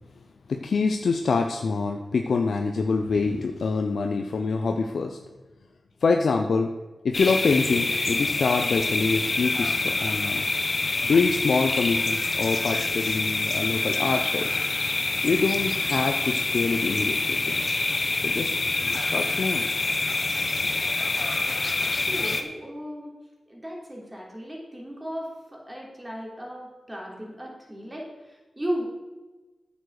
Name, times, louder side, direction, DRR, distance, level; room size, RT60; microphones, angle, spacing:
voice 1, 0.5-5.2 6.0-6.7 7.0-10.5 11.0-14.6 15.2-17.6 18.1-19.7, left 4 dB, 75° left, 4 dB, 0.6 m, -25 dB
sound 1, 7.1-22.4, left 3 dB, 45° left, 1.1 m, -26 dB
voice 2, 21.5-23.2 23.5-28.8, equal, 20° right, -2 dB, 3.5 m, -36 dB
8.8 x 7.2 x 6.5 m, 1.2 s
cardioid pair, 55°, 0 cm